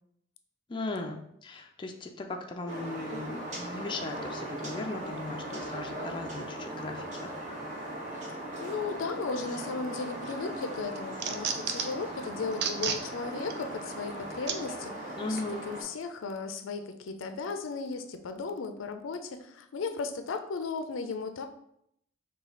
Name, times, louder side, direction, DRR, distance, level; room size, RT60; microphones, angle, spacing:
voice 1, 0.7-7.3 15.2-15.7, left 2 dB, 25° left, 3 dB, 0.3 m, -37 dB
sound 1, 2.7-15.8, right 1 dB, 40° right, 1.1 m, -39 dB
voice 2, 8.1-21.5, left 4 dB, 85° left, 8 dB, 0.4 m, -36 dB
sound 2, 9.9-10.4 10.7-12.0 12.5-13.0 13.5-13.6 14.5-14.6 15.4-15.5, right 7 dB, 55° right, 0.4 m, -32 dB
5.0 x 2.3 x 3.8 m, 0.74 s
head